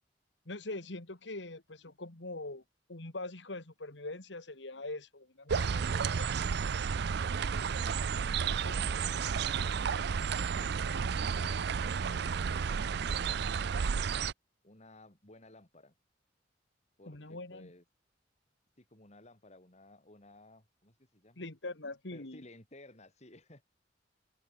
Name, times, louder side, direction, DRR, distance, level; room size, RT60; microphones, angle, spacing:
voice 1, 0.5-2.6 2.9-6.3 8.6-8.7 17.1-17.7 21.4-22.4, left 2 dB, 70° left, 2.4 m, -43 dB
sound 1, 5.5-14.3, right 6 dB, 60° right, 0.5 m, -32 dB
voice 2, 8.2-11.1 11.4-14.2 14.6-15.9 17.0-17.8 18.8-21.5 22.1-23.6, left 1 dB, 40° left, 4.4 m, -57 dB
open air
head